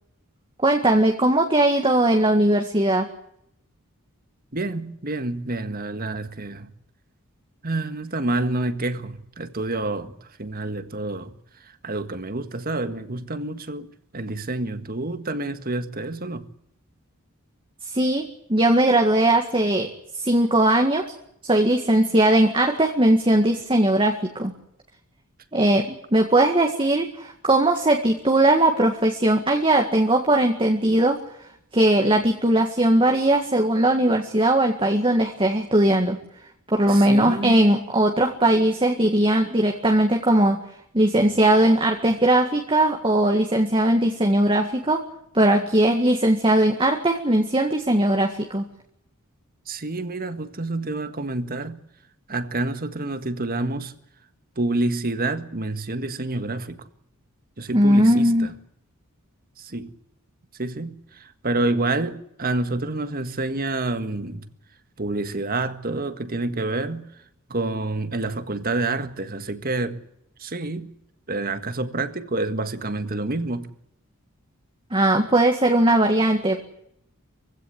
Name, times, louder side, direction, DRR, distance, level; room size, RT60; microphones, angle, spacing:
voice 1, 0.6-3.1 17.9-19.9 20.1-21.1 21.4-24.5 25.5-31.2 31.7-36.2 36.7-40.6 40.9-45.1 45.3-48.6 57.7-58.5 74.9-76.6, right 1 dB, 25° right, 1.9 m, -19 dB
voice 2, 4.5-6.7 7.6-11.3 11.6-16.5 36.9-37.6 49.7-51.8 52.3-53.9 54.6-56.9 57.6-58.5 59.6-59.9 60.6-64.5 65.0-67.1 67.5-70.0 70.4-70.9 71.3-73.7, right 2 dB, 40° right, 1.8 m, -28 dB
24.0 x 16.5 x 9.9 m
head